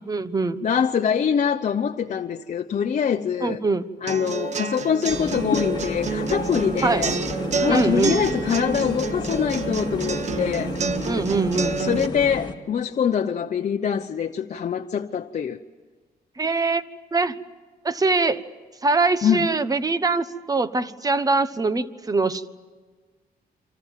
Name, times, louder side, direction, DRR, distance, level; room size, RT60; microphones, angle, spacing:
voice 1, 0.0-0.6 3.4-3.8 6.8-7.1 7.7-8.2 11.1-11.8 16.4-16.8 17.1-17.3 17.8-18.4 18.8-22.5, right 3 dB, 20° right, 1.1 m, -23 dB
voice 2, 0.6-3.6 4.0-7.1 7.6-10.7 11.8-15.6 19.2-19.5, left 7 dB, 50° left, 0.8 m, -24 dB
sound 1, 4.1-12.1, right 5 dB, 45° right, 1.1 m, -29 dB
sound 2, 5.1-12.5, left 4 dB, 30° left, 2.3 m, -31 dB
29.0 x 26.0 x 7.5 m
wide cardioid pair, 145°, 16 cm